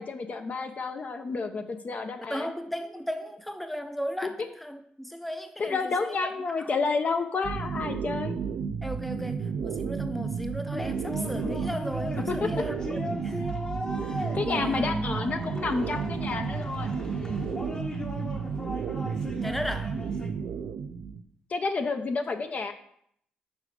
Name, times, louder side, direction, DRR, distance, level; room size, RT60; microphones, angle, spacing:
voice 1, 0.0-2.5 4.2-4.3 5.6-8.3 12.3-12.5 14.3-16.9 21.5-22.7, left 4 dB, 50° left, 7 dB, 0.6 m, -30 dB
voice 2, 2.2-6.2 6.6-6.7 8.8-13.4 14.0-15.2 19.4-20.0, equal, 5° left, 8 dB, 0.6 m, -36 dB
sound 1, 7.4-21.2, right 6 dB, 80° right, 0.4 m, -32 dB
sound 2, 10.7-20.3, left 2 dB, 25° left, 0.9 m, -38 dB
6.2 x 3.8 x 4.9 m, 0.69 s
cardioid pair, 65°, 3 cm